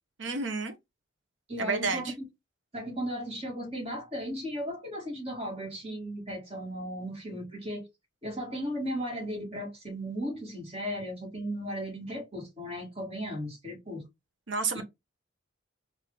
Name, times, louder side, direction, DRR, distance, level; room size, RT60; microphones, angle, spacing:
voice 1, 0.2-0.7 1.6-2.1 14.5-14.8, right 4 dB, 75° right, 0.8 m, -30 dB
voice 2, 1.5-2.3 2.7-7.9 8.2-14.0 14.7-14.8, equal, 30° right, 2.0 m, -36 dB
4.7 x 2.7 x 3.4 m
head